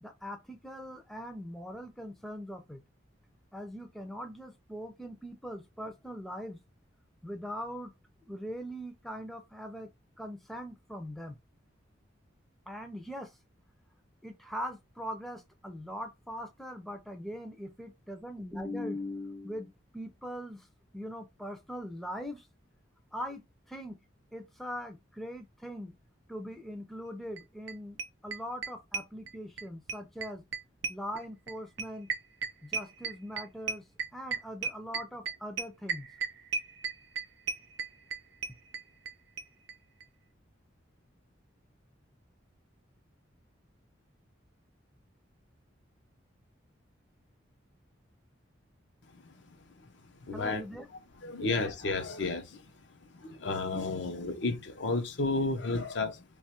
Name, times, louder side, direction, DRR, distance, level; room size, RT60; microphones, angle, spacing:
voice 1, 0.0-2.8 3.5-6.6 7.2-7.9 8.2-9.9 10.2-11.4 12.7-13.4 14.2-20.7 20.9-22.5 23.1-24.0 24.3-25.9 26.3-28.0 28.2-30.4 30.9-32.1 32.6-33.8 34.1-36.1 50.3-50.9 51.4-51.5, equal, ahead, 0.4 m, -41 dB
sound 1, 27.4-27.5 27.7-27.8 28.0-29.6 29.9-39.1 39.4-39.5 39.7-39.8 40.0-40.1, right 5 dB, 70° right, 0.5 m, -34 dB
voice 2, 50.3-50.6 51.2-52.7 53.1-56.2, left 3 dB, 70° left, 0.7 m, -32 dB
2.9 x 2.4 x 4.2 m
head